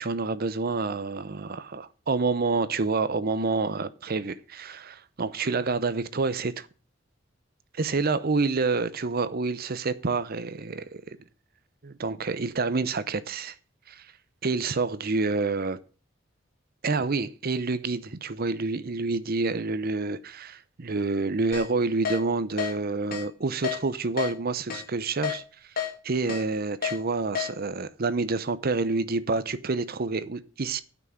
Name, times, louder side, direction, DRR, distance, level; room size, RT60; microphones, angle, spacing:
voice 1, 0.0-6.7 7.8-11.0 11.8-13.5 13.9-14.1 14.4-15.8 16.8-25.4 26.0-30.8, right 3 dB, 50° right, 0.7 m, -28 dB
Keyboard (musical), 21.5-21.7 22.1-22.2 22.6-22.7 23.1-23.2 23.6-23.8 24.2-24.3 24.7-24.8 25.2-25.4 25.8-25.9 26.3-26.4 26.8-27.0 27.4-27.5, left 8 dB, 50° left, 2.7 m, -29 dB
9.1 x 6.2 x 7.7 m
head